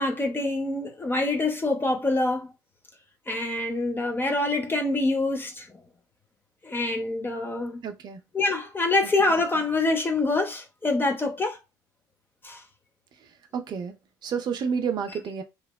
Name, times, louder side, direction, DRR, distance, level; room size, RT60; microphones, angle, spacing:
voice 1, 0.0-2.5 3.3-5.7 6.6-7.8 8.3-11.6 12.4-12.6, left 2 dB, 20° left, 0.6 m, -25 dB
voice 2, 7.8-8.2 9.2-9.3 13.5-13.9 14.2-15.4, right 6 dB, 40° right, 0.5 m, -30 dB
2.9 x 2.1 x 2.2 m
figure-of-eight pair, 50°, 11 cm